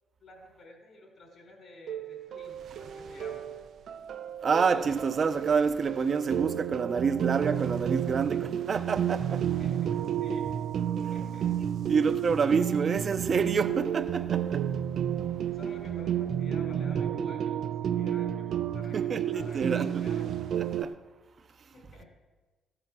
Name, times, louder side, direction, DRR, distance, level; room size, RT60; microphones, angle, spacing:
voice 1, 0.2-3.5 9.6-10.6 11.1-11.5 15.5-20.3 21.7-22.1, left 1 dB, 60° left, 4.5 m, -50 dB
sound 1, 1.9-20.9, right 10 dB, 65° right, 0.5 m, -31 dB
voice 2, 4.4-9.5 11.9-14.7 18.9-20.0 20.6-21.0, right 5 dB, 50° right, 0.9 m, -28 dB
14.5 x 7.8 x 6.2 m
supercardioid pair, 60°, 0 cm